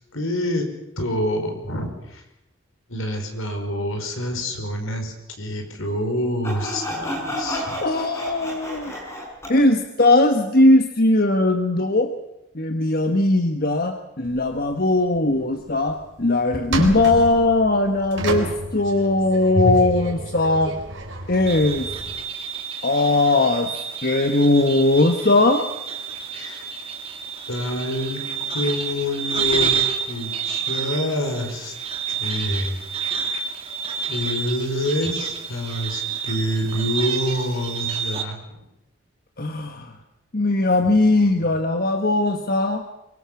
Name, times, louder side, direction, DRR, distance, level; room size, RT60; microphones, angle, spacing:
voice 1, 0.1-0.7 1.0-2.2 2.9-7.8 26.3-26.7 27.5-28.2 28.5-31.7 32.1-32.8 33.2-33.4 34.1-38.4, left 1 dB, 75° left, 5 dB, 5.4 m, -27 dB
Sawing, 6.4-9.6, left 1 dB, 15° left, 6.0 m, -30 dB
voice 2, 7.8-8.9 9.5-12.1 12.5-20.8 21.3-21.9 22.8-23.7 24.0-25.6 39.4-39.9 40.3-42.8, left 2 dB, 45° left, 5 dB, 1.4 m, -19 dB
sound 1, 14.2-14.7 15.2-15.3 15.7-16.1 16.5-22.2, right 1 dB, 60° right, 4.1 m, -29 dB
sound 2, 21.5-38.2, right 6 dB, 25° right, 2.5 m, -29 dB
23.5 x 23.5 x 7.1 m, 0.88 s
head